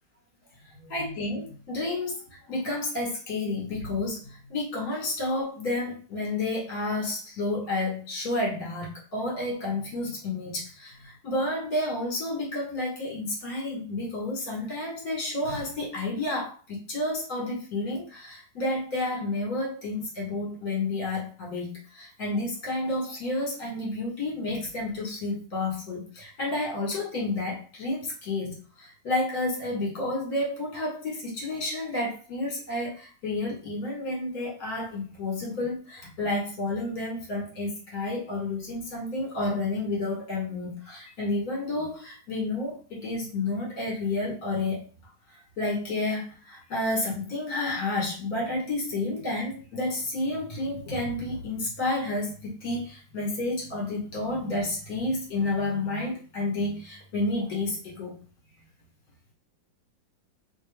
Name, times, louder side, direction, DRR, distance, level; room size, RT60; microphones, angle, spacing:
voice 1, 0.8-44.8 45.6-58.1, left 2 dB, 55° left, -2 dB, 2.0 m, -30 dB
3.3 x 3.0 x 3.4 m, 0.39 s
omnidirectional pair, 2.0 m